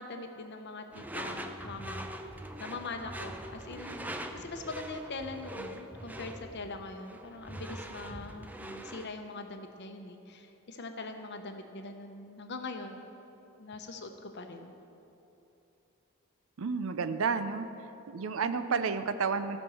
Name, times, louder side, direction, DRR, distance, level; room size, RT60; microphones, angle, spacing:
voice 1, 0.0-2.3 2.6-13.0 13.6-14.7, left 3 dB, 50° left, 5 dB, 0.8 m, -42 dB
Door / Screech, 0.9-9.2, right 1 dB, 5° right, 0.4 m, -42 dB
voice 2, 16.6-17.7 18.1-19.6, right 5 dB, 65° right, 11 dB, 0.5 m, -31 dB
14.0 x 5.4 x 7.0 m, 2.9 s
head